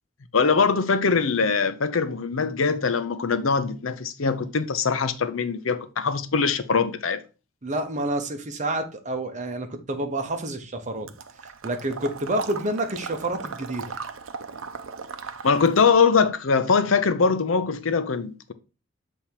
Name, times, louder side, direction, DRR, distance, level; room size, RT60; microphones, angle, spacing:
voice 1, 0.3-7.2 15.4-18.5, left 5 dB, 85° left, 0.7 m, -22 dB
voice 2, 7.6-11.1 11.4-13.9, right 1 dB, 35° right, 1.0 m, -29 dB
Water / Liquid, 11.1-15.9, right 5 dB, 85° right, 0.7 m, -37 dB
7.1 x 3.5 x 4.5 m
head